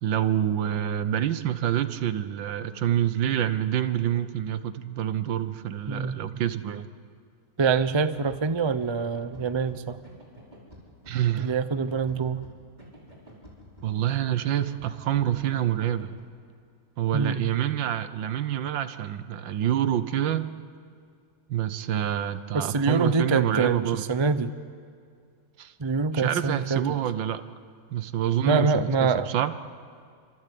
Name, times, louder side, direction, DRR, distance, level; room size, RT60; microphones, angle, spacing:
voice 1, 0.0-6.9 11.1-11.6 13.8-16.2 17.0-20.6 21.5-24.0 25.6-25.7 26.1-27.4 27.9-29.5, right 11 dB, 85° right, 12 dB, 1.7 m, -27 dB
voice 2, 5.9-6.2 7.6-10.0 11.4-12.4 17.1-17.5 22.5-24.5 25.8-26.9 28.4-29.3, right 4 dB, 35° right, 11 dB, 0.4 m, -25 dB
sound 1, 8.1-16.2, equal, 20° right, 5.8 m, -49 dB
27.5 x 25.5 x 8.5 m, 2.1 s
omnidirectional pair, 2.0 m